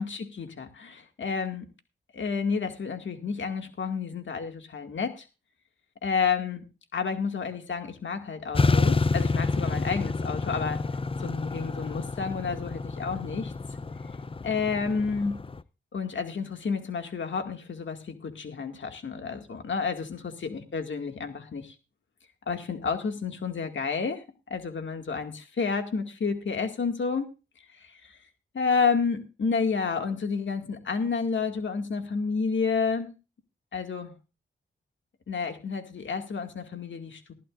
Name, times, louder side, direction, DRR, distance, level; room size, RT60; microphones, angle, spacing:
voice 1, 0.0-1.7 2.1-5.3 6.0-6.6 6.9-10.8 11.2-13.5 14.4-15.4 15.9-20.1 20.4-21.7 22.5-27.3 27.8-28.2 28.5-33.1 33.7-34.1 35.3-37.3, left 5 dB, 70° left, 5 dB, 2.2 m, -30 dB
sound 1, 8.5-15.6, left 3 dB, 25° left, 0.6 m, -28 dB
19.0 x 13.0 x 2.6 m, 0.30 s
cardioid pair, 55°, 20 cm